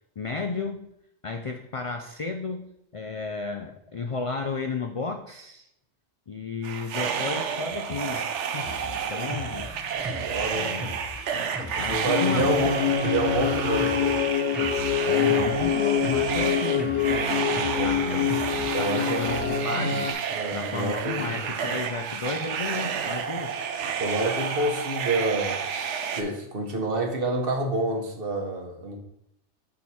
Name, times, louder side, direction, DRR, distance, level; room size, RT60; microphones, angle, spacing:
voice 1, 0.2-0.9 1.2-5.7 6.3-9.7 10.5-10.9 11.7-13.0 15.1-18.3 18.8-20.2 20.5-23.7, left 4 dB, 55° left, 5 dB, 0.3 m, -33 dB
sound 1, 6.6-26.2, right 7 dB, 80° right, 1.0 m, -31 dB
Drum kit, 8.6-18.7, left 1 dB, ahead, 0.6 m, -38 dB
voice 2, 10.1-10.8 11.7-12.7 13.0-14.2 17.8-17.9 18.7-19.2 20.3-21.3 24.0-25.6 26.1-29.0, right 2 dB, 55° right, 2 dB, 1.3 m, -28 dB
sound 2, 12.1-20.1, left 8 dB, 75° left, 1.1 m, -26 dB
6.4 x 4.7 x 4.3 m, 0.78 s
omnidirectional pair, 1.2 m